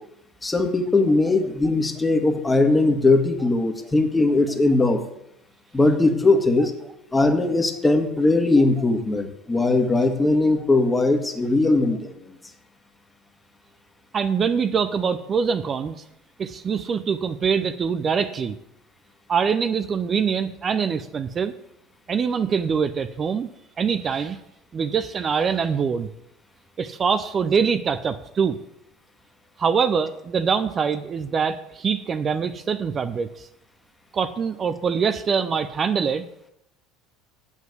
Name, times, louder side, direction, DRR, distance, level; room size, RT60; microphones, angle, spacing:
voice 1, 0.4-5.0 5.7-6.7 7.1-12.1, left 2 dB, 15° left, 6 dB, 1.7 m, -20 dB
voice 2, 14.1-16.0 16.4-18.6 19.3-21.5 22.1-23.5 23.8-24.4 24.7-26.1 26.8-28.6 29.6-33.5 34.1-36.3, right 6 dB, 35° right, 10 dB, 0.6 m, -24 dB
7.9 x 7.3 x 8.2 m, 0.82 s
hypercardioid pair, 75°, 0 cm